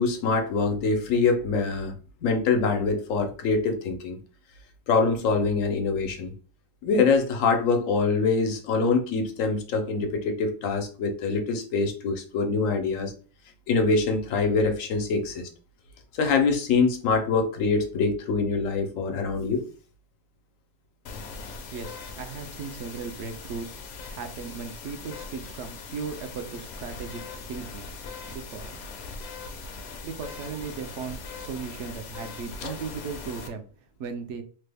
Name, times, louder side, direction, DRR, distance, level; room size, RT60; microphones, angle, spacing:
voice 1, 0.0-1.9 2.2-4.2 4.9-6.3 6.8-13.1 13.7-15.5 16.1-19.6 32.6-32.7, left 4 dB, 90° left, 4 dB, 1.1 m, -24 dB
sound 1, 21.1-33.5, left 4 dB, 65° left, 0.8 m, -40 dB
voice 2, 21.7-23.7 24.1-27.2 27.5-27.8 28.3-28.8 30.0-33.7 34.0-34.4, right 5 dB, 70° right, 7 dB, 0.9 m, -37 dB
3.2 x 2.2 x 3.3 m, 0.40 s
omnidirectional pair, 1.3 m